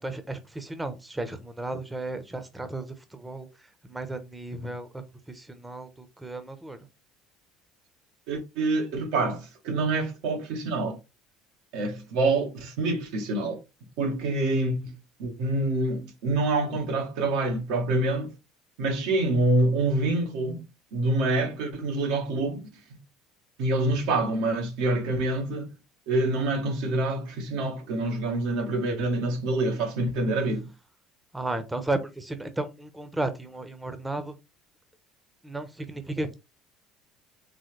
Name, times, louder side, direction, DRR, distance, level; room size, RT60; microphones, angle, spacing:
voice 1, 0.0-3.5 3.8-6.8 31.3-34.3 35.4-36.4, right 2 dB, 15° right, 1.0 m, -34 dB
voice 2, 8.3-11.0 11.7-13.6 14.0-14.9 15.2-18.3 18.8-20.7 20.9-23.0 23.6-25.7 26.1-30.7, right 2 dB, 70° right, 1.5 m, -26 dB
4.0 x 3.7 x 3.3 m
hypercardioid pair, 70°, 0 cm